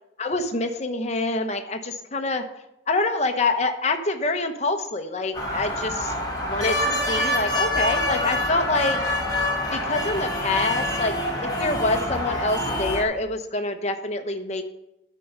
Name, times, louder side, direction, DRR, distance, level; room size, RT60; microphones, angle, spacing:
voice 1, 0.2-2.4 2.9-6.1 6.5-9.0 9.7-14.7, left 2 dB, 40° left, 6 dB, 0.9 m, -26 dB
sound 1, 5.3-13.0, left 1 dB, 20° left, 1.4 m, -26 dB
12.5 x 4.6 x 5.4 m, 0.87 s
head